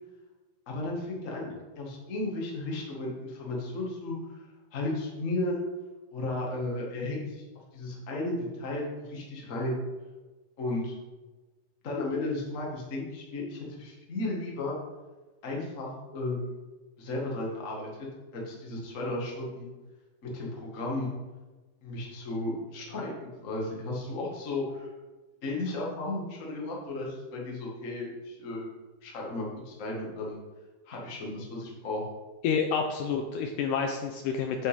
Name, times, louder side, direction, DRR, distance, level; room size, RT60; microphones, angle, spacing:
voice 1, 0.7-1.4 1.7-4.2 4.7-5.6 6.1-7.4 7.7-9.8 10.6-11.0 11.8-14.7 15.4-16.5 17.0-17.9 18.3-19.7 20.2-21.1 21.8-24.9 25.4-28.7 29.0-30.4 30.9-32.0, left 2 dB, 35° left, -2 dB, 1.4 m, -34 dB
voice 2, 32.4-34.7, left 6 dB, 85° left, 4 dB, 1.9 m, -29 dB
8.9 x 8.2 x 3.6 m, 1.2 s
omnidirectional pair, 4.2 m